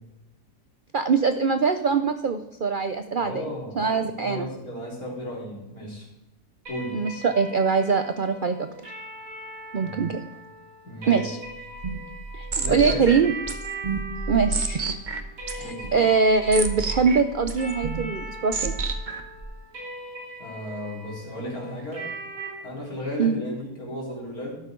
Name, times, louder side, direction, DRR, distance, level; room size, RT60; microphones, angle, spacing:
voice 1, 0.9-3.4 3.8-4.5 6.9-8.7 9.7-10.2 11.1-11.4 12.3-13.3 14.3-15.0 15.5-18.8 23.2-23.4, right 5 dB, 75° right, 8 dB, 0.4 m, -23 dB
voice 2, 3.1-3.8 4.2-6.1 6.7-7.0 9.8-10.1 10.8-11.3 12.6-13.1 15.6-16.1 20.4-22.1 22.6-24.6, equal, 65° left, -3 dB, 4.6 m, -34 dB
sound 1, 6.7-22.5, right 2 dB, 60° right, 4.1 m, -41 dB
sound 2, 11.5-19.4, right 3 dB, 35° right, 1.0 m, -31 dB
13.0 x 12.0 x 3.8 m, 0.96 s
omnidirectional pair, 1.7 m